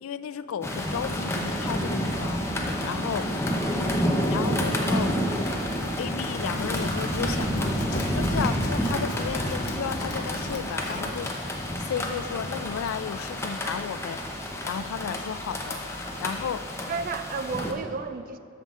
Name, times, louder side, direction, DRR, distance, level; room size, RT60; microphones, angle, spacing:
voice 1, 0.0-2.4 2.8-3.3 4.3-5.1 6.0-7.7 8.1-16.7, left 7 dB, 80° left, 15 dB, 0.3 m, -34 dB
sound 1, 0.6-17.7, equal, 15° left, 0.7 m, -29 dB
Run, 6.4-11.2, left 1 dB, 50° left, 1.1 m, -35 dB
voice 2, 16.9-18.4, right 4 dB, 40° right, 11 dB, 0.3 m, -33 dB
13.5 x 5.5 x 3.7 m, 2.8 s
head